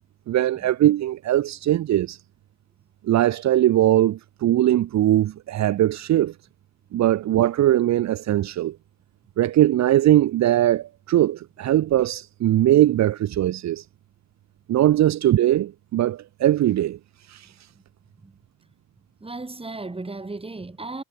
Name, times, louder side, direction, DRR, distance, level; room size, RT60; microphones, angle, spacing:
voice 1, 0.3-2.2 3.0-6.3 6.9-8.8 9.4-13.8 14.7-17.0 17.3-17.5, right 13 dB, 65° right, 0.9 m, -20 dB
voice 2, 19.2-21.0, right 3 dB, 20° right, 4.7 m, -35 dB
cardioid pair, 90°, 30 cm